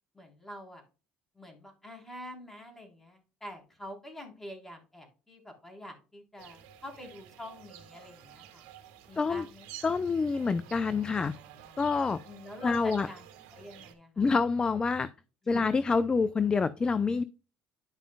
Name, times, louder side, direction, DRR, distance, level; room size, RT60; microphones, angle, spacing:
voice 1, 0.1-0.8 1.4-8.6 9.1-9.9 12.3-13.2 13.5-14.3 15.5-15.6, left 1 dB, 10° left, 3 dB, 3.6 m, -46 dB
sound 1, 6.4-13.9, right 10 dB, 85° right, 1.6 m, -51 dB
voice 2, 9.2-9.5 9.8-11.3 11.8-12.2 12.6-13.1 14.2-15.1 15.5-17.2, left 4 dB, 25° left, 15 dB, 0.5 m, -27 dB
11.5 x 5.2 x 2.2 m, 0.32 s
supercardioid pair, 85°, 3 cm